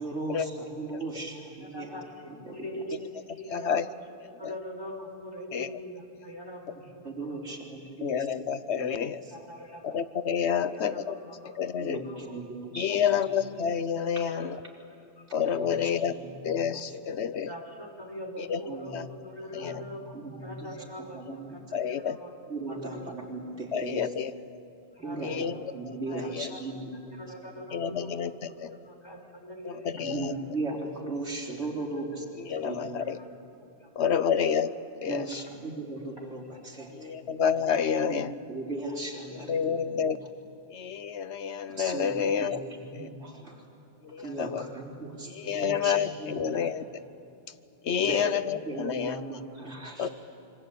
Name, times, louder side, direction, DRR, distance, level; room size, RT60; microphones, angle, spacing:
voice 1, 0.0-2.8 6.7-8.4 8.8-9.5 11.8-13.0 13.3-13.4 14.2-14.3 15.3-17.0 18.6-19.1 19.6-21.6 22.5-24.1 25.0-27.2 27.5-27.6 30.0-33.0 35.1-37.1 38.0-39.8 40.1-40.2 41.7-43.6 44.2-46.7 48.0-50.1, right 2 dB, 90° right, -1 dB, 4.2 m, -38 dB
voice 2, 2.5-3.0 3.4-3.9 4.4-7.0 7.3-7.4 9.3-10.0 10.6-11.4 12.0-12.2 14.3-14.5 15.3-15.4 17.4-20.1 20.4-21.2 22.0-22.3 22.8-23.1 25.0-25.6 26.1-26.6 27.2-28.1 28.9-29.9 32.8-32.9 34.2-34.4, equal, 20° left, 1 dB, 4.0 m, -42 dB
voice 3, 3.5-3.9 4.2-4.5 5.5-5.8 8.0-9.2 9.8-11.2 11.6-12.0 12.8-14.6 15.3-16.1 16.4-17.5 18.4-18.6 18.9-19.1 19.5-19.8 21.3-21.4 21.7-22.2 23.7-24.3 25.2-25.6 26.3-26.5 27.7-28.8 29.6-30.4 32.5-33.2 34.0-34.7 35.0-35.4 37.0-38.3 39.5-40.2 40.7-42.6 43.0-43.1 44.1-44.6 45.4-46.8 47.9-49.2 50.0-50.1, left 7 dB, 75° left, 14 dB, 1.1 m, -29 dB
27.0 x 24.5 x 8.4 m, 2.9 s
omnidirectional pair, 1.1 m